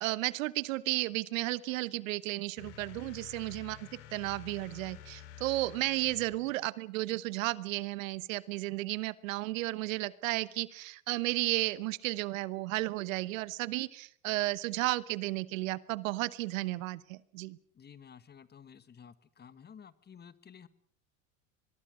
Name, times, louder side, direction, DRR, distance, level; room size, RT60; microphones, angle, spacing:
voice 1, 0.0-17.6, right 19 dB, 70° right, 19 dB, 1.1 m, -33 dB
sound 1, 2.6-6.5, left 10 dB, 65° left, 4.2 m, -50 dB
voice 2, 17.7-20.7, left 7 dB, 25° left, 15 dB, 1.4 m, -53 dB
23.5 x 21.5 x 6.3 m, 0.62 s
hypercardioid pair, 95°, 41 cm